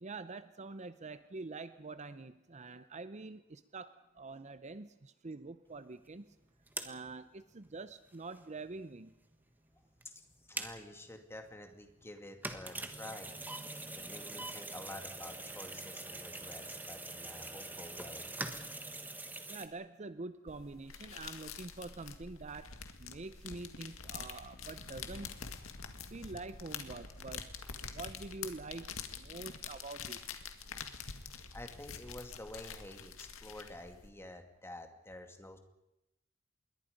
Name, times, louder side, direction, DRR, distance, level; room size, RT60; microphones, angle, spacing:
voice 1, 0.0-6.3 6.8-9.1 19.5-22.7 23.0-25.3 26.1-27.5 27.9-30.2, right 3 dB, 35° right, 13 dB, 0.7 m, -46 dB
sound 1, 5.7-5.8 6.1-6.2 6.5-8.9 9.3-9.5 9.8-10.9 11.3-11.5 11.8-19.7, right 2 dB, 10° right, 1.6 m, -43 dB
voice 2, 10.5-13.3 13.9-18.3 31.2-35.6, left 1 dB, 10° left, 5 dB, 2.4 m, -49 dB
sound 2, 20.5-34.1, left 6 dB, 85° left, 2.0 m, -46 dB
sound 3, 24.4-29.4, left 1 dB, 45° left, 1.0 m, -57 dB
27.0 x 22.0 x 5.3 m, 0.88 s
head